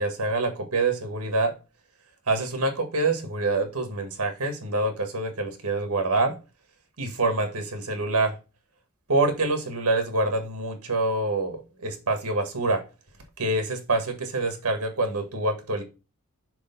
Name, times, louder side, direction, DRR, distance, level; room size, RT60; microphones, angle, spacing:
voice 1, 0.0-1.5 2.3-6.3 7.0-8.3 9.1-12.8 13.4-15.8, right 2 dB, 90° right, 1.7 m, -26 dB
6.4 x 3.4 x 5.2 m
head